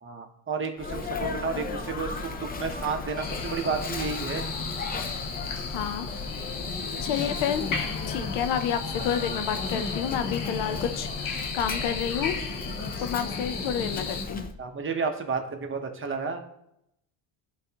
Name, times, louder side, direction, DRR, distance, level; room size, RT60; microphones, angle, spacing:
voice 1, 0.0-4.5 14.6-16.4, right 5 dB, 25° right, 4 dB, 0.9 m, -31 dB
Sneeze, 0.8-14.5, left 3 dB, 20° left, 0.5 m, -35 dB
sound 1, 3.2-14.2, left 5 dB, 45° left, 0.8 m, -35 dB
voice 2, 5.7-6.1 7.0-7.8 8.1-12.4 13.0-14.5, left 8 dB, 90° left, 9 dB, 0.8 m, -30 dB
10.5 x 4.0 x 2.9 m, 0.78 s
cardioid pair, 120°, 47 cm